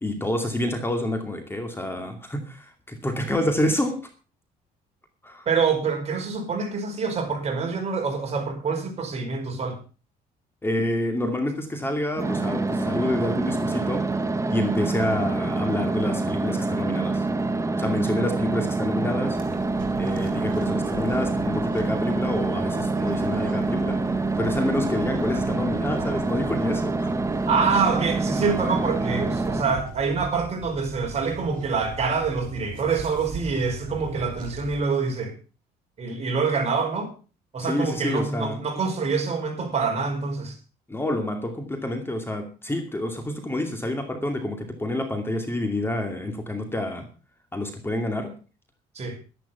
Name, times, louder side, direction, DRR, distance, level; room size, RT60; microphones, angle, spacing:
voice 1, 0.0-4.0 5.2-5.5 10.6-14.1 14.5-17.3 17.8-19.4 20.0-27.1 37.6-38.6 40.9-47.1 47.5-48.3, left 1 dB, 15° left, 2.4 m, -28 dB
voice 2, 5.5-9.8 27.5-35.4 36.0-37.1 37.5-40.6 49.0-49.2, right 5 dB, 40° right, 5.1 m, -26 dB
sound 1, 12.2-29.6, right 3 dB, 15° right, 1.2 m, -26 dB
sound 2, 19.3-34.8, right 6 dB, 55° right, 3.8 m, -40 dB
12.0 x 11.5 x 5.7 m
cardioid pair, 110°, 17 cm